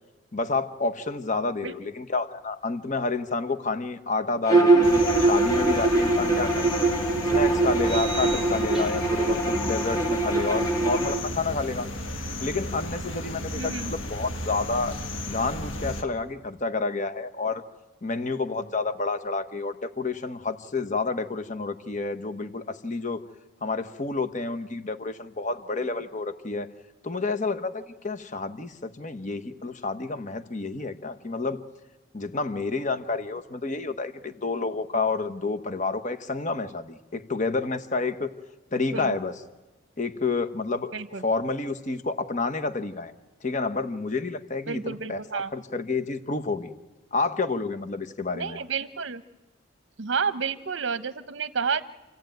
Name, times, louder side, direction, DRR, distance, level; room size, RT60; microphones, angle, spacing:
voice 1, 0.3-6.8 7.3-11.9 12.4-14.9 15.2-17.6 18.0-23.2 23.6-26.7 27.0-31.6 32.1-38.3 38.7-39.3 40.0-40.9 41.2-43.1 43.4-46.7 47.1-48.6, left 3 dB, 40° left, 10 dB, 1.1 m, -29 dB
Bowed string instrument, 4.4-11.2, right 2 dB, 20° left, 2.4 m, -22 dB
sound 1, 4.8-16.0, left 1 dB, 75° left, 1.8 m, -34 dB
sound 2, 6.2-6.3 7.8-9.3, right 7 dB, 5° right, 1.5 m, -38 dB
voice 2, 13.6-13.9 38.9-39.1 40.9-41.2 44.7-45.5 48.3-49.2 50.0-51.9, right 5 dB, 60° right, 12 dB, 0.8 m, -30 dB
27.0 x 15.0 x 9.2 m, 1.2 s
head